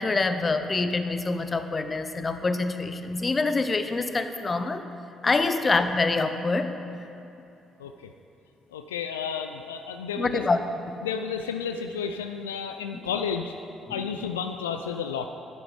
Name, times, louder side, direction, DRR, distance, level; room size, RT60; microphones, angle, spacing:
voice 1, 0.0-4.8 5.2-6.7 10.2-10.6 10.9-11.0, left 3 dB, 30° left, 9 dB, 0.7 m, -25 dB
voice 2, 7.8-8.1 8.7-10.5 11.0-13.5 13.9-15.3, left 6 dB, 85° left, 6 dB, 0.3 m, -32 dB
9.5 x 7.9 x 4.9 m, 2.8 s
hypercardioid pair, 45°, 0 cm